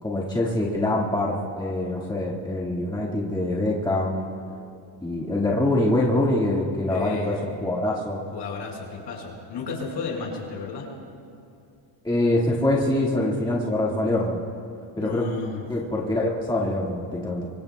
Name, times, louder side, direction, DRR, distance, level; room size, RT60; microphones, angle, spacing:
voice 1, 0.0-4.3 5.0-8.2 12.0-14.4 15.0-15.3 15.7-17.5, left 1 dB, 10° left, -4 dB, 1.9 m, -24 dB
voice 2, 6.9-7.4 8.3-10.9 15.0-15.6, left 4 dB, 60° left, -1 dB, 5.0 m, -33 dB
25.0 x 23.5 x 2.3 m, 2.5 s
cardioid pair, 120°, 46 cm